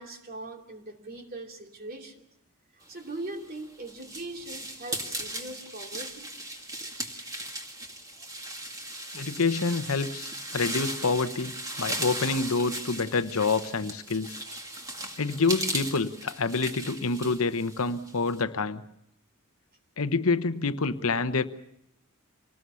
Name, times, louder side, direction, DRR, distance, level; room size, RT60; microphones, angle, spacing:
voice 1, 0.0-2.2 2.7-6.7 7.1-7.6 8.2-8.3 14.5-14.6, right 2 dB, 45° right, 3 dB, 2.7 m, -41 dB
sound 1, 3.2-18.4, right 1 dB, 15° right, 2.2 m, -37 dB
voice 2, 9.1-11.5 11.8-14.4 15.2-18.8 20.0-21.4, left 4 dB, 75° left, 10 dB, 1.0 m, -27 dB
26.0 x 19.0 x 7.0 m, 0.78 s
head